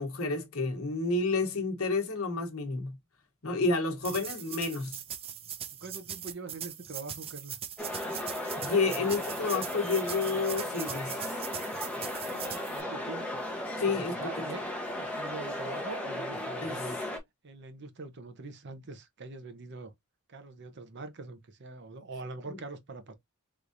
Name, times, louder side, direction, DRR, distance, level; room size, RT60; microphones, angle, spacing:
voice 1, 0.0-3.0 3.4-5.0 8.6-11.4 13.8-14.2 16.6-16.7 22.5-22.6, left 3 dB, 75° left, 1.0 m, -30 dB
sound 1, 4.0-12.8, right 9 dB, 25° right, 0.4 m, -41 dB
voice 2, 5.8-7.6 12.2-13.4 13.9-14.6 14.9-17.0 17.4-19.9 20.3-23.1, right 3 dB, 50° right, 0.8 m, -43 dB
sound 2, 7.8-17.2, left 1 dB, 5° left, 0.9 m, -36 dB
3.6 x 3.1 x 2.6 m
head